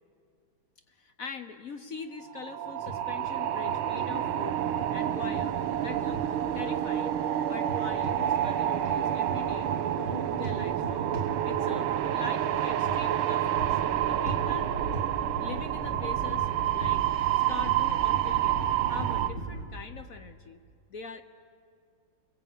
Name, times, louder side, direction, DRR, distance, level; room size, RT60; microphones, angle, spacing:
voice 1, 0.9-4.6 4.9-5.6 5.8-7.2 7.4-9.7 10.0-11.1 11.4-14.7 15.4-17.1 17.5-18.6 18.9-20.6 20.9-21.2, left 5 dB, 55° left, 9 dB, 1.0 m, -42 dB
sound 1, 2.2-19.3, right 11 dB, 80° right, 1.7 m, -28 dB
sound 2, 2.9-3.4 3.7-4.1 5.4-6.4 7.6-8.6 8.8-11.9 12.9-13.0 13.6-13.9 14.3-14.5 14.9-15.1 15.9-17.4 17.6-19.6, right 3 dB, 85° left, 4.3 m, -38 dB
sound 3, 13.5-19.7, right 3 dB, 55° right, 3.2 m, -40 dB
29.5 x 22.0 x 8.4 m, 2.3 s
omnidirectional pair, 2.3 m